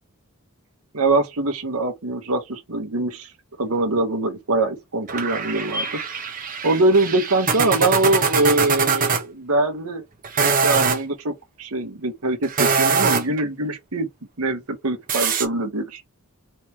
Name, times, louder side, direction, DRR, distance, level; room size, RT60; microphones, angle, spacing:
voice 1, 0.9-3.3 3.6-6.0 6.6-10.0 10.4-14.1 14.4-16.0, right 2 dB, 75° right, 1.3 m, -23 dB
sound 1, 5.1-9.2 10.2-11.0 12.4-13.4 15.1-15.5, right 5 dB, 40° right, 1.0 m, -22 dB
4.4 x 3.4 x 3.1 m
head